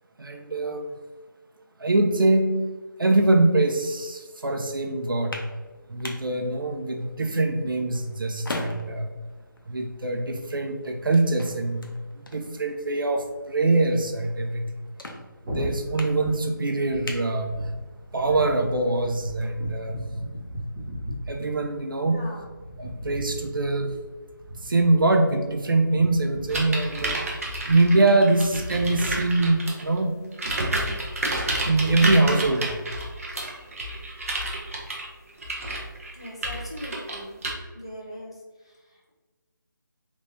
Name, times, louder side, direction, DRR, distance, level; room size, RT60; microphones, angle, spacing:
voice 1, 0.2-0.9 1.8-2.5 3.0-5.4 5.9-9.1 9.7-14.7 15.5-17.6 18.1-20.0 21.3-22.2 22.8-24.0 24.6-30.2 31.6-32.8, right 2 dB, 80° right, 4 dB, 0.6 m, -23 dB
sound 1, 5.0-18.1, left 1 dB, 85° left, 0.7 m, -42 dB
sound 2, 15.4-29.3, equal, 15° right, 1.2 m, -38 dB
voice 2, 22.1-22.5 36.1-37.4 37.7-39.1, equal, 15° left, -4 dB, 0.3 m, -41 dB
sound 3, 26.5-29.9 30.3-37.5, right 1 dB, 40° right, 0.7 m, -30 dB
3.4 x 3.1 x 2.6 m, 1.3 s
figure-of-eight pair, 170°, 11 cm